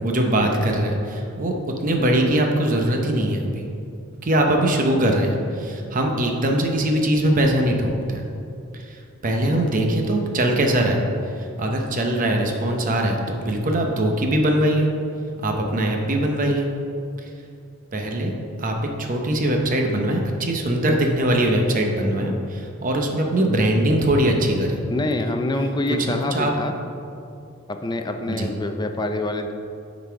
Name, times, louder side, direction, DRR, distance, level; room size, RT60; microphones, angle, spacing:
voice 1, 0.0-1.5 1.8-3.7 4.2-8.3 8.9-11.0 11.6-14.9 15.4-16.7 17.9-18.3 18.6-24.8 26.1-26.5 28.3-28.5, right 1 dB, 40° right, 2 dB, 0.8 m, -21 dB
voice 2, 24.9-26.7 27.7-29.5, left 2 dB, 20° left, 5 dB, 0.4 m, -26 dB
8.0 x 4.1 x 5.7 m, 2.6 s
head